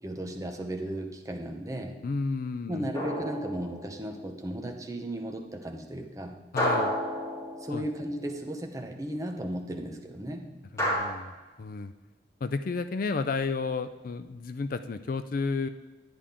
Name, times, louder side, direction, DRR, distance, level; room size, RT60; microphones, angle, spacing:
voice 1, 0.0-2.0 2.7-6.4 7.6-10.5, right 1 dB, 20° right, 3 dB, 0.9 m, -35 dB
voice 2, 2.0-2.9 6.5-6.9 7.7-7.9 10.7-11.9 12.4-15.7, left 4 dB, 50° left, 11 dB, 0.4 m, -32 dB
sound 1, 2.9-4.2 6.6-8.2 10.8-11.0, equal, 15° left, 3.2 m, -31 dB
10.5 x 9.9 x 3.6 m, 1.2 s
head